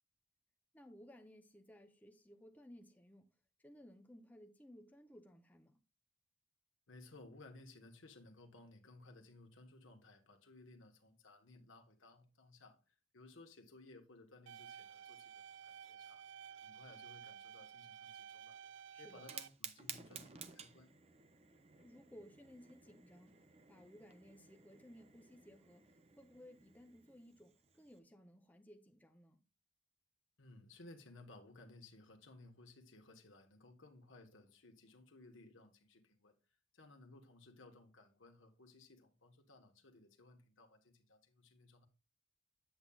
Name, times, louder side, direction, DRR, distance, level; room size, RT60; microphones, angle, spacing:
voice 1, 0.7-3.3 3.6-5.8 18.9-19.3 21.8-23.4 23.7-29.4, equal, 10° left, 0.6 m, -59 dB
voice 2, 6.9-16.2 16.6-18.6 19.0-20.9 30.4-36.3 36.7-41.9, left 2 dB, 85° left, 1.2 m, -60 dB
sound 1, 14.5-19.5, right 8 dB, 75° right, 0.4 m, -53 dB
Fire, 19.1-28.0, right 7 dB, 30° right, 0.6 m, -55 dB
8.5 x 8.0 x 2.3 m
head